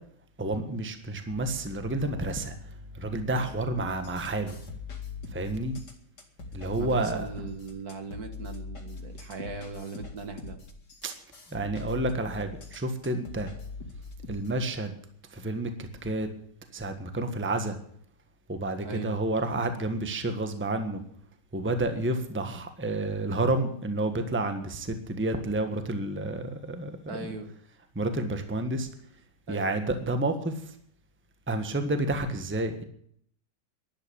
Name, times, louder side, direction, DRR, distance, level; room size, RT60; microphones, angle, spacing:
voice 1, 0.4-4.6 5.3-5.8 6.5-7.3 11.0-11.1 11.5-13.5 14.3-14.9 15.3-16.3 16.7-17.8 18.5-21.0 21.5-27.3 27.9-28.9 29.5-30.7 31.5-32.8, right 2 dB, 5° right, 7 dB, 1.3 m, -30 dB
sound 1, 4.0-14.5, left 3 dB, 65° left, 2.9 m, -42 dB
voice 2, 6.7-10.6 18.8-19.2 27.1-27.5 29.5-29.7, right 4 dB, 55° right, 7 dB, 2.0 m, -39 dB
12.0 x 11.5 x 8.7 m, 0.65 s
omnidirectional pair, 2.0 m